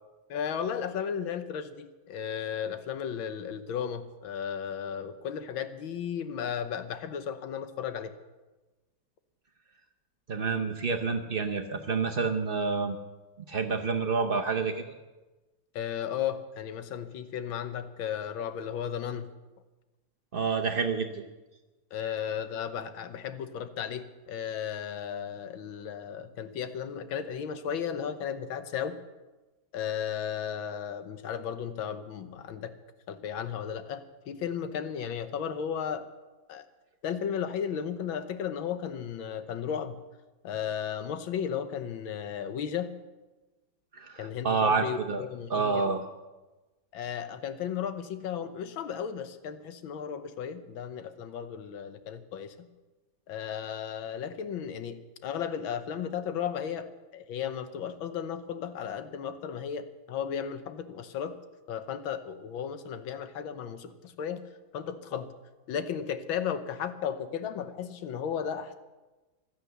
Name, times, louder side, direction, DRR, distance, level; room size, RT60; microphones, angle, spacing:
voice 1, 0.3-8.1 15.7-19.3 21.9-29.0 29.7-32.7 33.1-36.1 36.5-36.7 37.0-40.0 40.4-43.0 44.2-46.0 46.9-52.7 53.3-61.4 61.7-64.4 64.7-65.3 65.7-68.7, left 8 dB, 80° left, 11 dB, 1.7 m, -35 dB
voice 2, 10.3-13.0 13.5-14.8 20.3-21.2 43.9-45.2 45.5-46.0, right 4 dB, 90° right, 4 dB, 0.4 m, -28 dB
16.0 x 12.0 x 6.8 m, 1.2 s
omnidirectional pair, 2.2 m